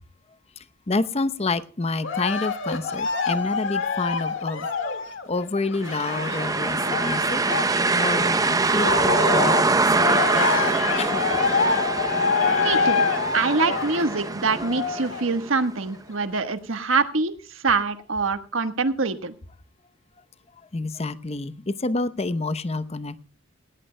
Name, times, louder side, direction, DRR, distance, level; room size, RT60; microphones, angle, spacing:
voice 1, 0.9-4.7 5.3-7.4 7.9-10.2 11.0-11.2 20.7-23.2, left 3 dB, 30° left, 13 dB, 0.8 m, -28 dB
Cheering, 2.0-8.3 8.7-15.3 15.9-16.0, left 4 dB, 70° left, 1.9 m, -26 dB
Car Drive By Slow, 5.8-15.6, right 3 dB, 20° right, 0.7 m, -24 dB
voice 2, 12.6-13.0 13.3-19.3, right 4 dB, 80° right, 9 dB, 1.3 m, -24 dB
18.0 x 16.5 x 2.2 m, 0.37 s
head